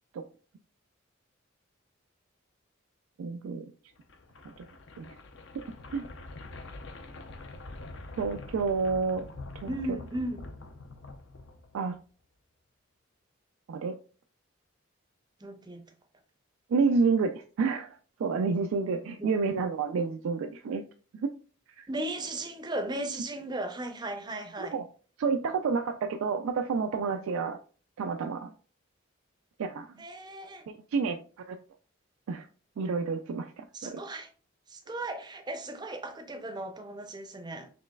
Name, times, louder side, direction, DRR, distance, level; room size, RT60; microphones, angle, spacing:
voice 1, 3.2-3.6 5.0-5.1 5.9-6.0 8.2-9.3 9.6-9.7 11.7-12.0 13.7-14.0 16.7-20.8 21.1-21.3 21.8-21.9 24.6-24.8 25.2-27.6 28.0-28.5 29.6-29.9 30.7-31.2 31.5-31.6 32.3-32.5 32.8-34.0, right 5 dB, 85° right, 0.3 m, -29 dB
sound 1, 4.0-12.0, left 2 dB, 60° left, 0.5 m, -45 dB
voice 2, 9.7-10.4 15.4-15.8 19.2-19.3 21.9-24.8 30.0-30.6 33.7-34.3 34.7-37.7, right 1 dB, 20° right, 0.5 m, -36 dB
5.1 x 3.2 x 2.2 m
head